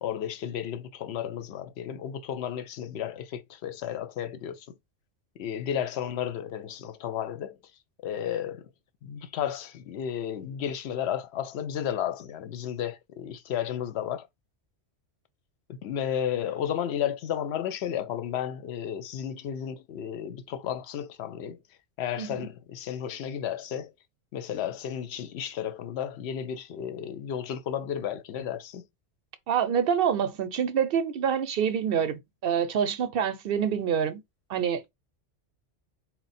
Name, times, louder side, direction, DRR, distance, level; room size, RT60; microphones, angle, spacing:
voice 1, 0.0-4.7 5.4-7.6 8.0-8.7 9.0-14.3 15.7-21.6 22.0-23.9 24.3-28.8, left 9 dB, 70° left, 0.8 m, -33 dB
voice 2, 29.5-34.2 34.5-34.8, right 8 dB, 60° right, 0.7 m, -26 dB
4.5 x 2.1 x 4.0 m
omnidirectional pair, 1.2 m